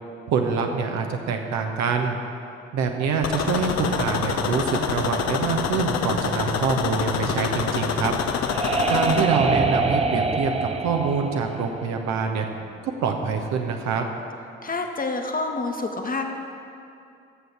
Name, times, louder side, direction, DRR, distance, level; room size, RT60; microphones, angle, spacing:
voice 1, 0.3-2.2 2.7-8.1 8.9-12.5 12.8-14.0, right 5 dB, 55° right, 3 dB, 1.1 m, -25 dB
sound 1, 3.2-9.2, left 7 dB, 55° left, 0.8 m, -26 dB
sound 2, 8.0-12.5, right 3 dB, 20° right, 0.8 m, -25 dB
voice 2, 14.6-16.3, left 3 dB, 25° left, 3 dB, 1.3 m, -28 dB
11.5 x 7.9 x 6.0 m, 2.5 s
figure-of-eight pair, 40°, 33 cm